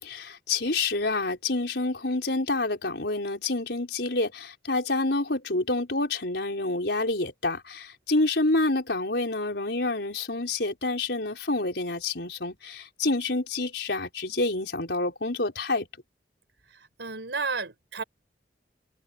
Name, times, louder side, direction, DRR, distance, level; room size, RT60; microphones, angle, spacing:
voice 1, 0.0-15.9, left 2 dB, 70° left, 4.7 m, -28 dB
voice 2, 17.0-18.0, right 4 dB, 85° right, 3.9 m, -31 dB
head